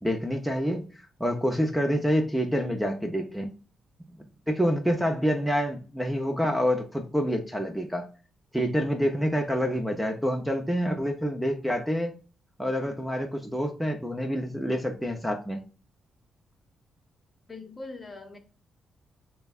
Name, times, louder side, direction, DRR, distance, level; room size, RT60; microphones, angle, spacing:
voice 1, 0.0-0.9 1.2-3.5 4.5-8.1 8.5-12.1 12.6-15.6, equal, ahead, 0.6 m, -27 dB
voice 2, 17.5-18.4, left 3 dB, 25° left, 0.9 m, -41 dB
6.6 x 2.2 x 2.4 m
cardioid pair, 90°, 0 cm